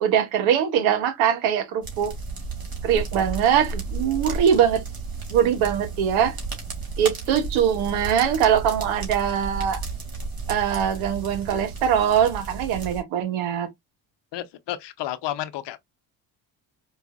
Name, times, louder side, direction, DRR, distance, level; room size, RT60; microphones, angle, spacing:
voice 1, 0.0-2.1 2.8-4.8 5.3-6.4 7.0-9.8 10.5-13.7, right 9 dB, 80° right, 1.0 m, -22 dB
sound 1, 1.8-13.0, right 4 dB, 45° right, 2.1 m, -33 dB
voice 2, 14.3-15.8, left 13 dB, 60° left, 0.7 m, -31 dB
4.8 x 2.4 x 2.4 m
supercardioid pair, 65°, 48 cm